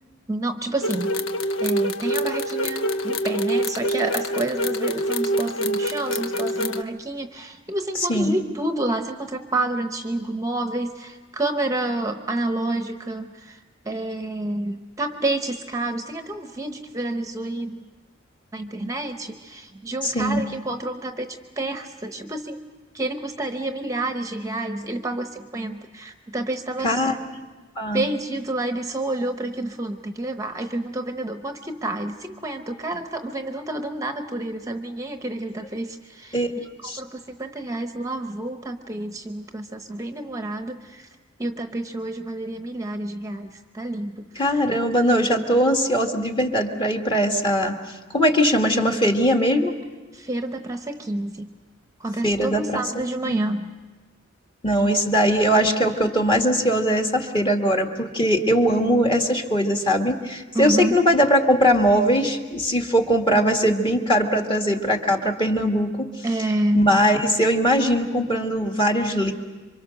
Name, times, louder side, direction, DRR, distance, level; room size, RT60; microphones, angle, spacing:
voice 1, 0.3-1.1 1.6-13.6 13.9-17.8 18.5-22.6 22.9-27.0 27.9-36.4 37.0-41.1 41.4-44.2 50.1-51.5 52.0-53.7 60.5-61.0 66.2-66.9, right 2 dB, 15° right, 6 dB, 0.9 m, -29 dB
sound 1, 0.8-6.8, equal, 85° left, 0.9 m, -25 dB
voice 2, 8.0-8.3 20.0-20.4 26.8-27.1 27.8-28.1 36.3-36.5 36.8-37.0 44.4-47.8 48.1-49.8 52.2-53.4 54.6-66.1 66.7-69.3, equal, 25° left, 3 dB, 1.9 m, -20 dB
27.0 x 24.5 x 6.5 m, 1.3 s
head